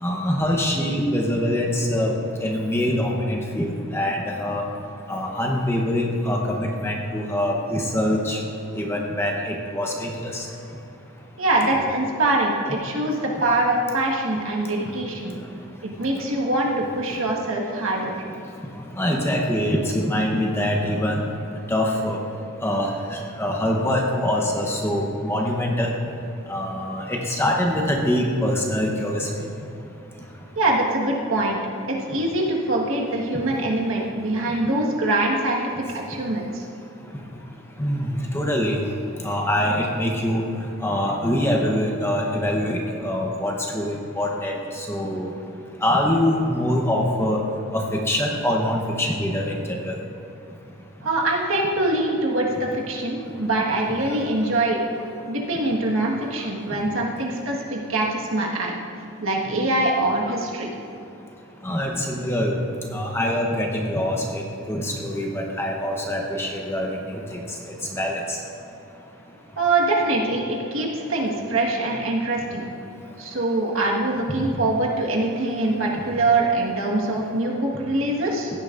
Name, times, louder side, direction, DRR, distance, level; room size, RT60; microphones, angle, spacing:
voice 1, 0.0-2.1 2.4-4.6 5.1-8.4 8.8-10.4 19.0-21.2 21.7-22.2 22.6-25.9 26.5-29.3 37.8-38.8 39.2-40.4 40.8-45.3 45.8-47.4 47.7-49.9 61.6-62.5 62.9-66.9 67.3-67.4 67.9-68.4, left 1 dB, 10° left, 0 dB, 0.9 m, -24 dB
voice 2, 11.4-15.3 15.8-18.2 30.6-31.6 31.9-35.6 35.9-36.6 51.0-54.8 55.3-58.7 59.2-60.7 69.6-72.7 73.2-78.5, right 2 dB, 70° right, -2 dB, 1.5 m, -23 dB
15.5 x 10.0 x 2.6 m, 2.7 s
head